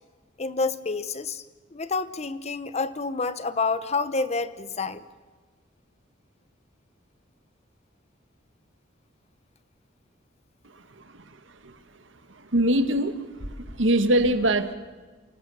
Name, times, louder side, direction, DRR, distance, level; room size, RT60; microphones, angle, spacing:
voice 1, 0.4-1.4 1.7-5.0, left 4 dB, 35° left, 14 dB, 0.9 m, -28 dB
voice 2, 12.5-13.2 13.5-14.7, right 1 dB, 90° right, 9 dB, 1.6 m, -23 dB
27.5 x 18.5 x 7.1 m, 1.3 s
head